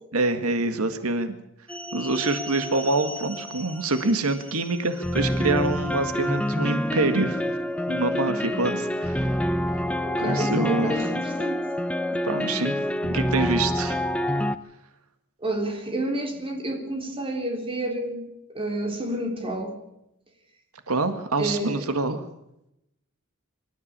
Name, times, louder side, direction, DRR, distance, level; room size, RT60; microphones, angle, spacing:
voice 1, 0.1-1.4 1.9-7.4 7.9-9.4 10.2-11.1 12.1-12.8 13.1-14.0 20.9-22.2, right 2 dB, 90° right, 1.8 m, -26 dB
sound 1, 1.7-14.6, left 1 dB, 5° left, 0.8 m, -27 dB
voice 2, 10.0-11.7 15.4-19.8 21.4-21.9, right 1 dB, 25° right, 3.9 m, -30 dB
25.0 x 13.5 x 8.8 m
head